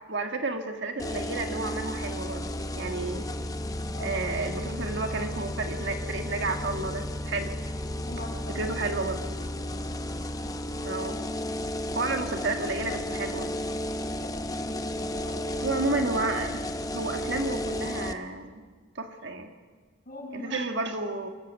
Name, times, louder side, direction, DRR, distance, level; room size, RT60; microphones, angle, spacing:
voice 1, 0.1-2.5 2.7-3.2 4.0-7.5 8.5-9.2 10.8-11.2 11.9-13.5 15.6-16.6 16.9-18.6 18.9-19.5 20.3-21.3, right 3 dB, 55° right, 5 dB, 1.7 m, -31 dB
sound 1, 1.0-18.1, left 1 dB, 15° left, 0.8 m, -33 dB
voice 2, 8.1-8.8 12.0-12.1 14.2-14.4 14.6-15.5 20.1-20.5, left 1 dB, 45° left, -1 dB, 7.0 m, -42 dB
26.0 x 14.5 x 8.2 m, 1.5 s
head